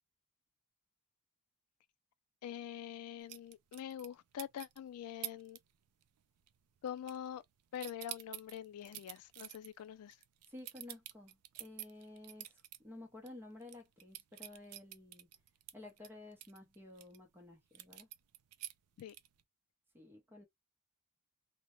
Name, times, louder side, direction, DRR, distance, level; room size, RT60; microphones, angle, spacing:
voice 1, 2.4-5.6 6.8-7.4 7.7-10.2 19.0-19.1, left 10 dB, 85° left, 0.3 m, -45 dB
sound 1, 3.3-4.1 4.4-4.8 5.2-5.6 5.9-6.2 6.5-7.5 7.7-12.8 13.2-13.3 13.6-17.2 17.8-19.4, right 14 dB, 85° right, 0.3 m, -48 dB
voice 2, 10.5-15.3 15.7-18.1 19.9-20.5, left 2 dB, 10° right, 0.6 m, -53 dB
2.1 x 2.1 x 2.8 m
head